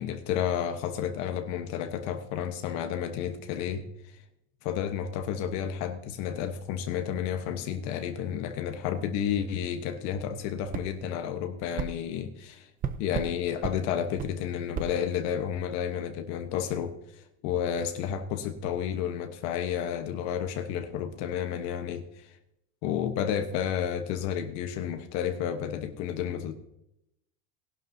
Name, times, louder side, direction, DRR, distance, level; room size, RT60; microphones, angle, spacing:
voice 1, 0.0-4.1 4.6-12.7 13.0-22.4 22.8-26.5, left 9 dB, 65° left, 7 dB, 1.1 m, -31 dB
sound 1, 10.7-10.9 11.8-11.9 12.8-13.3 13.6-13.8 14.2-14.3 14.7-14.9, right 7 dB, 30° right, 0.7 m, -32 dB
18.5 x 11.5 x 2.7 m, 0.84 s
cardioid pair, 145°, 29 cm